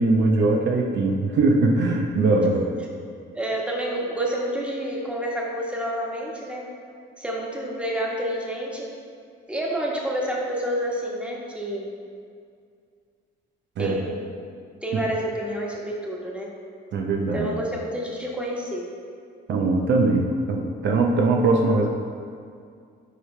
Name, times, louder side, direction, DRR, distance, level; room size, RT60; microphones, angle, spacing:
voice 1, 0.0-2.7 13.8-13.9 14.9-15.0 16.9-17.5 19.5-21.9, right 3 dB, 65° right, 1 dB, 0.7 m, -21 dB
voice 2, 3.3-6.7 7.2-8.9 9.5-11.9 13.8-14.3 14.8-16.5 17.3-18.9, right 1 dB, 5° right, -2 dB, 1.3 m, -29 dB
9.4 x 4.9 x 3.2 m, 2.2 s
cardioid pair, 90°, 20 cm